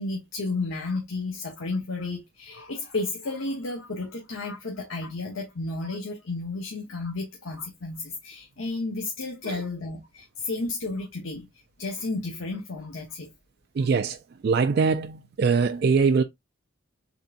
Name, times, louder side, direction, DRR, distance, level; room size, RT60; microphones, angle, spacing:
voice 1, 0.0-13.3 13.8-13.9, left 3 dB, 75° left, 1.0 m, -32 dB
voice 2, 13.8-14.2 14.4-16.2, right 5 dB, 50° right, 0.3 m, -22 dB
4.0 x 3.5 x 2.4 m
head